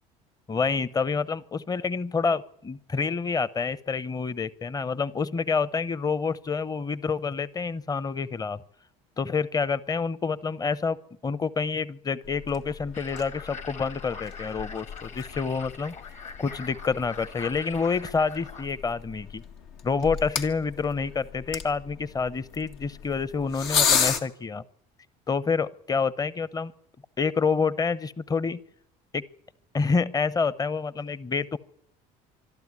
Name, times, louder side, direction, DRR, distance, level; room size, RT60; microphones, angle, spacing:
voice 1, 0.5-8.6 9.2-11.0 11.2-15.9 16.4-19.4 19.8-24.6 25.3-26.7 27.2-28.6 29.1-29.2 29.7-31.6, left 5 dB, 20° left, 18 dB, 0.8 m, -28 dB
sound 1, 12.2-24.2, left 7 dB, 80° left, 1.9 m, -33 dB
sound 2, 12.9-18.7, left 5 dB, 40° left, 1.4 m, -42 dB
25.0 x 12.5 x 9.8 m, 0.76 s
supercardioid pair, 90°, 18 cm